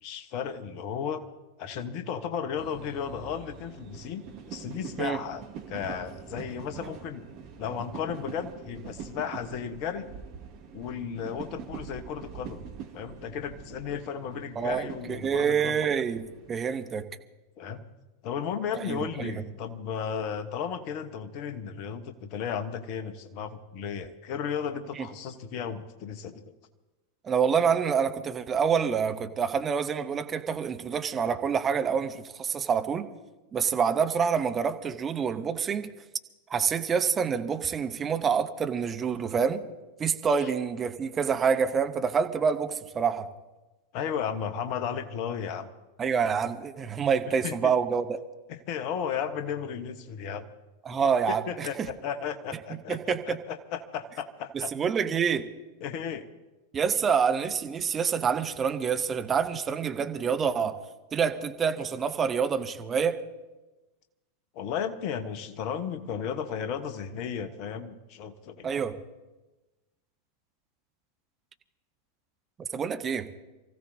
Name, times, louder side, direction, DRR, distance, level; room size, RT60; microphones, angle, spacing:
voice 1, 0.0-1.2 1.6-7.2 7.6-10.1 10.7-12.6 12.9-15.8 17.6-17.8 18.2-26.5 40.4-40.5 43.9-45.7 47.4-47.7 48.5-50.5 51.3-54.7 55.8-56.3 64.5-68.7, left 7 dB, 45° left, 9 dB, 1.2 m, -34 dB
sound 1, 2.6-16.9, right 7 dB, 45° right, 2.3 m, -44 dB
voice 2, 14.6-17.1 18.7-19.3 25.0-25.1 27.2-33.1 33.5-35.9 36.5-39.6 40.0-43.3 46.0-48.2 50.8-51.7 52.9-53.4 54.5-55.5 56.7-60.8 61.1-63.2 68.6-68.9 72.6-73.3, right 6 dB, 20° right, 7 dB, 1.0 m, -27 dB
28.0 x 15.5 x 2.8 m, 1.1 s
figure-of-eight pair, 90°, 0 cm